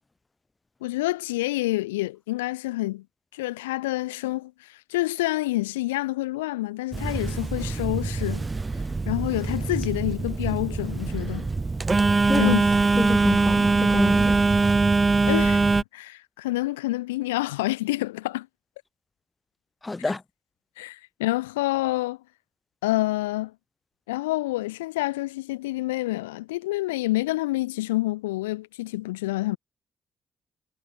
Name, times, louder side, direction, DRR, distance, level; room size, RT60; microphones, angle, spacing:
voice 1, 0.8-3.0 3.3-8.5 9.0-11.5 12.4-12.7 15.2-15.7 15.9-18.5 20.8-22.2 22.8-23.5 24.1-29.6, left 18 dB, 80° left, 1.1 m, -28 dB
Telephone, 6.9-15.8, right 3 dB, 30° right, 0.4 m, -23 dB
voice 2, 13.0-14.4 19.8-20.2, left 2 dB, 20° left, 0.8 m, -27 dB
figure-of-eight pair, 40°, 0 cm